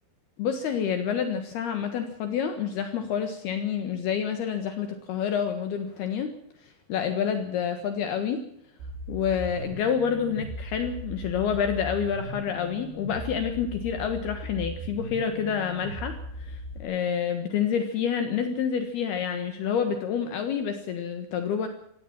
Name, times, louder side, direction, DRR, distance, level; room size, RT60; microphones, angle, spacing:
voice 1, 0.4-6.3 6.6-8.4 9.1-21.7, left 7 dB, 65° left, 7 dB, 3.2 m, -28 dB
sound 1, 8.8-16.8, equal, 75° right, 5.0 m, -38 dB
19.0 x 16.5 x 9.0 m, 0.70 s
omnidirectional pair, 5.3 m